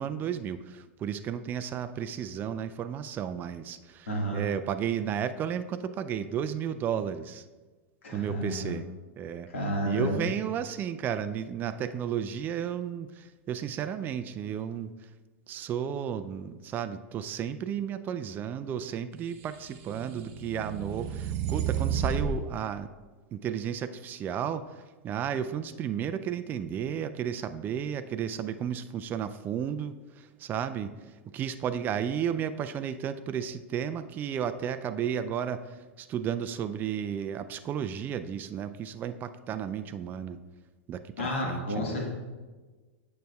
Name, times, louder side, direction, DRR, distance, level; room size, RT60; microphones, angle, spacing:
voice 1, 0.0-4.1 4.3-7.4 8.1-8.9 9.2-9.5 9.9-14.9 15.5-22.9 23.3-30.9 31.3-40.4 40.9-42.0, right 8 dB, 30° right, 11 dB, 0.3 m, -33 dB
voice 2, 4.1-4.4 8.0-8.8 9.5-10.3 41.2-42.1, equal, 80° left, -2 dB, 1.8 m, -31 dB
sound 1, 19.5-22.4, right 7 dB, 45° right, 0.8 m, -31 dB
9.0 x 6.4 x 2.3 m, 1.3 s
hypercardioid pair, 100°, 7 cm